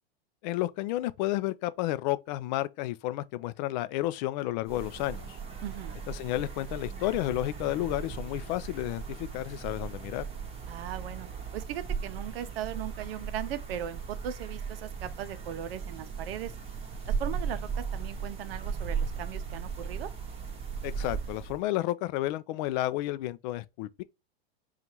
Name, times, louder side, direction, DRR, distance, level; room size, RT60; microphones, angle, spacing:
voice 1, 0.4-5.4 6.1-10.2 20.8-24.0, left 16 dB, 45° left, 0.4 m, -31 dB
sound 1, 4.6-21.6, right 6 dB, 20° right, 0.9 m, -37 dB
voice 2, 5.6-5.9 10.7-11.3 11.5-16.5 17.1-20.1, right 10 dB, 65° right, 0.7 m, -38 dB
5.3 x 2.5 x 2.9 m
hypercardioid pair, 125°, 32 cm